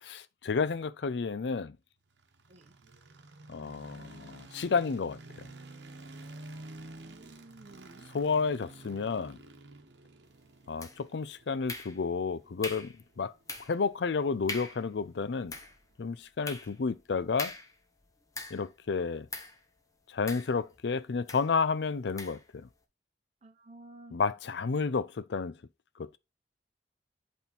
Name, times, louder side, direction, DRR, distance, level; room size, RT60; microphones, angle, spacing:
voice 1, 0.0-1.8 3.5-5.5 8.1-9.4 10.7-13.3 13.7-15.5 16.0-17.5 18.5-19.3 20.1-22.7 24.1-25.6 26.0-26.2, left 5 dB, 75° left, 0.5 m, -31 dB
sound 1, 2.1-16.2, right 2 dB, 80° right, 1.0 m, -51 dB
voice 2, 7.0-8.0 23.4-24.2, right 2 dB, 40° right, 0.8 m, -52 dB
sound 2, 10.8-11.2 11.7-12.2 12.6-13.0 13.5-13.8 14.1-14.2 14.5-14.9 15.3-18.8 19.3-19.6 20.3-20.9 21.3-21.5 22.2-22.5, left 3 dB, 20° left, 1.0 m, -42 dB
8.2 x 3.7 x 4.2 m
head